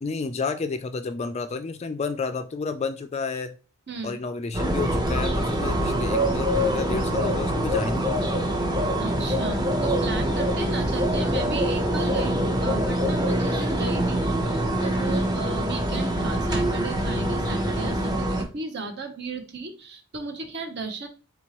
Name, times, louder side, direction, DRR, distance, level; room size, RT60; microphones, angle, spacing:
voice 1, 0.0-3.5 4.0-8.5, left 4 dB, 30° left, 9 dB, 0.3 m, -31 dB
voice 2, 3.9-4.2 9.0-21.1, right 3 dB, 50° right, 5 dB, 0.9 m, -35 dB
sound 1, 4.5-18.4, right 1 dB, 20° right, 0.8 m, -24 dB
4.4 x 3.9 x 3.0 m, 0.34 s
head